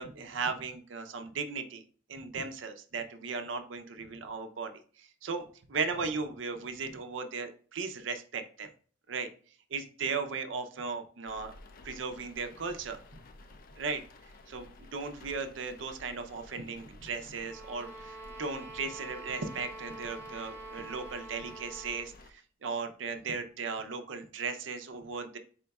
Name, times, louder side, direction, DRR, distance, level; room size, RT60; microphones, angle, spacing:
voice 1, 0.0-1.8 2.1-8.7 9.1-9.3 9.7-11.5 11.8-13.0 13.8-14.0 14.5-25.4, right 4 dB, 70° right, 7 dB, 0.6 m, -37 dB
sound 1, 11.3-22.3, left 2 dB, 45° left, 0.4 m, -53 dB
sound 2, 17.4-22.1, right 2 dB, 10° right, 0.6 m, -46 dB
4.4 x 2.3 x 4.0 m, 0.42 s
head